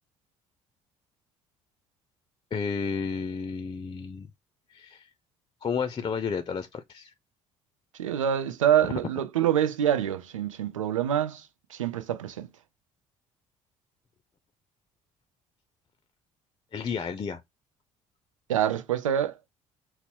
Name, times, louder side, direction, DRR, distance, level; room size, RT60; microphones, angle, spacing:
voice 1, 2.5-4.3 4.7-5.1 5.6-7.1 8.8-8.9 16.7-17.4, left 6 dB, 30° left, 0.5 m, -32 dB
voice 2, 8.0-12.5 18.5-19.4, right 10 dB, 80° right, 0.5 m, -26 dB
3.9 x 2.0 x 4.4 m
figure-of-eight pair, 50°, 16 cm